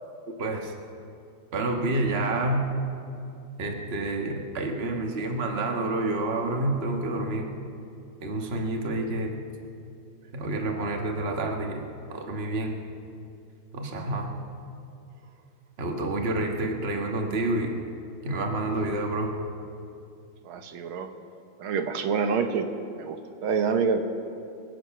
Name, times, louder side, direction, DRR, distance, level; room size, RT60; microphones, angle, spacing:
voice 1, 0.4-0.7 1.5-2.6 3.6-7.5 8.2-9.3 10.3-11.8 12.1-12.7 13.7-14.3 15.8-17.7 18.2-19.3, right 2 dB, 35° right, 2 dB, 1.5 m, -28 dB
voice 2, 20.5-21.1 21.6-22.7 23.0-23.2 23.4-24.0, right 6 dB, 85° right, 6 dB, 1.8 m, -26 dB
25.5 x 8.6 x 5.9 m, 2.5 s
omnidirectional pair, 2.2 m